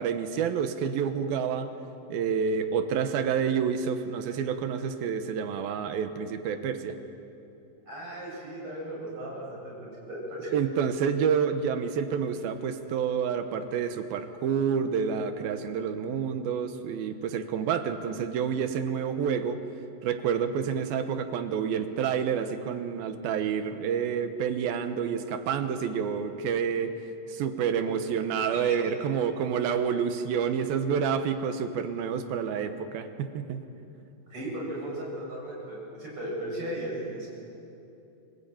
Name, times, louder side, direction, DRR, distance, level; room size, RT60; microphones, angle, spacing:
voice 1, 0.0-1.7 2.1-7.0 10.5-19.6 20.0-26.9 27.3-33.6, right 7 dB, 80° right, 8 dB, 2.9 m, -28 dB
voice 2, 7.9-10.5 27.9-28.0 28.3-28.9 34.3-37.3, right 1 dB, 35° right, -4 dB, 8.9 m, -37 dB
26.0 x 19.0 x 9.0 m, 2.8 s
omnidirectional pair, 4.3 m